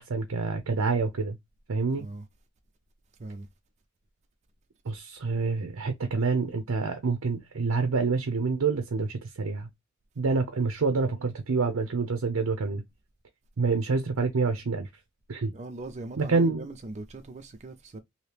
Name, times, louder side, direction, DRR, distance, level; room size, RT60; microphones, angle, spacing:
voice 1, 0.0-1.4 1.7-2.1 4.9-9.7 10.2-12.8 13.6-14.9 15.3-15.5 16.2-16.6, right 4 dB, 90° right, 0.6 m, -27 dB
voice 2, 1.9-2.3 3.2-3.5 15.5-18.0, right 2 dB, 35° right, 0.4 m, -40 dB
2.9 x 2.8 x 3.3 m
head